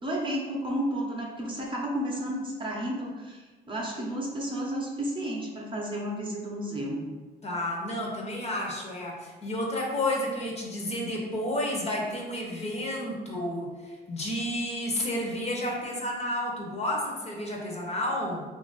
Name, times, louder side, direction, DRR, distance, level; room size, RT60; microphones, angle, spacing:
voice 1, 0.0-7.0, right 1 dB, 25° right, -3 dB, 0.8 m, -32 dB
voice 2, 7.4-18.4, left 1 dB, 35° left, -2 dB, 0.8 m, -31 dB
2.9 x 2.5 x 3.9 m, 1.3 s
cardioid pair, 90°, 20 cm